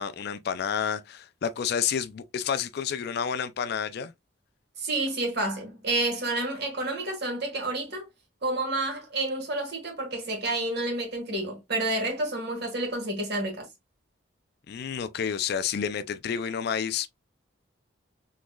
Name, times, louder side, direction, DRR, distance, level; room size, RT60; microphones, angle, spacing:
voice 1, 0.0-4.1 14.7-17.1, left 7 dB, 55° left, 0.3 m, -30 dB
voice 2, 4.8-8.1 8.4-13.7, right 2 dB, 55° right, 1.5 m, -29 dB
3.7 x 3.0 x 2.2 m
head